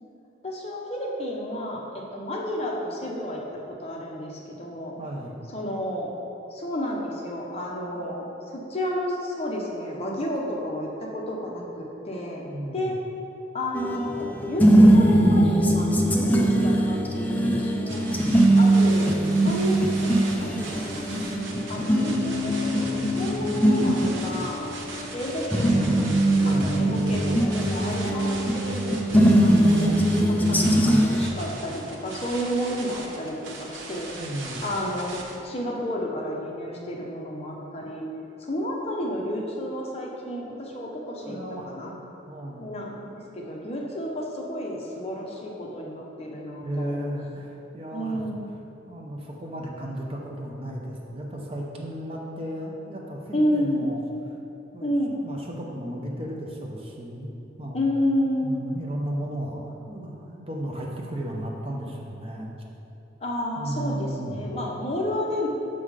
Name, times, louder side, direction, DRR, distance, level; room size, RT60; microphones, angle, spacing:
voice 1, 0.4-3.4 3.7-4.9 5.5-6.1 6.5-12.4 12.7-13.0 13.5-18.2 18.6-20.1 20.4-21.1 21.7-24.7 25.1-30.0 30.3-34.1 34.6-38.0 38.4-41.4 41.7-41.9 42.6-47.0 47.9-48.5 53.3-53.9 54.8-55.2 57.7-58.8 63.2-65.5, equal, 30° left, -2 dB, 0.8 m, -31 dB
voice 2, 5.0-5.3 12.4-12.9 26.4-26.9 30.6-31.2 34.2-34.6 41.2-42.0 42.3-42.7 46.6-48.2 48.9-54.0 54.7-54.9 55.2-57.3 57.6-57.8 58.4-62.6 63.6-64.5, right 1 dB, 30° right, -1 dB, 0.7 m, -34 dB
sound 1, 13.7-31.3, right 1 dB, 10° left, 0.4 m, -21 dB
sound 2, 17.9-35.4, right 3 dB, 75° right, 0.9 m, -39 dB
6.3 x 5.7 x 4.9 m, 2.9 s
head